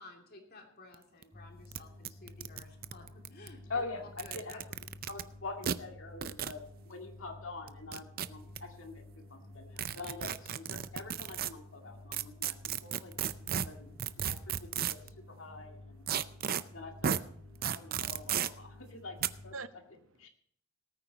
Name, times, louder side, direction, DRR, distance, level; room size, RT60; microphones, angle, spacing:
voice 1, 0.0-3.8 4.2-4.6, left 2 dB, 50° left, 3 dB, 2.8 m, -54 dB
sound 1, 0.9-1.0 1.2-1.3 1.7-1.8 2.0-3.5 4.1-5.2 5.6-5.8 6.2-6.6 7.7-8.6 9.8-11.5 12.1-15.1 16.1-16.6 17.0-17.2 17.6-18.5 19.2-19.3, right 9 dB, 50° right, 0.5 m, -34 dB
sound 2, 1.3-19.6, left 2 dB, 25° left, 3.7 m, -52 dB
voice 2, 3.7-4.6 5.1-9.0 9.3-12.6 12.8-13.1 13.5-13.9 14.2-15.0 15.3-16.1 16.7-17.2 17.6-19.5 20.2-20.3, left 3 dB, 75° left, 3 dB, 2.2 m, -44 dB
voice 3, 8.1-8.6 9.1-10.0 11.8-17.9 18.2-19.1 19.5-20.3, right 4 dB, 90° right, 12 dB, 0.8 m, -56 dB
18.5 x 9.0 x 4.1 m, 0.64 s
head